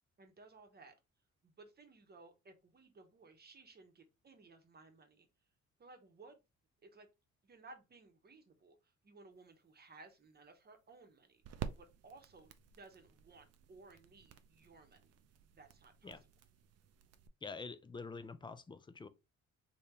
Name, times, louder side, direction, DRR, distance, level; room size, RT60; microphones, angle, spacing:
voice 1, 0.2-0.9 1.4-5.3 5.8-6.4 6.8-7.1 7.4-11.4 11.8-15.1 15.5-16.2, right 3 dB, 35° right, 0.9 m, -59 dB
sound 1, 9.4-17.3, right 8 dB, 55° right, 0.5 m, -51 dB
voice 2, 17.4-19.1, left 4 dB, 15° left, 0.3 m, -46 dB
3.4 x 2.8 x 2.8 m
cardioid pair, 90°, 30 cm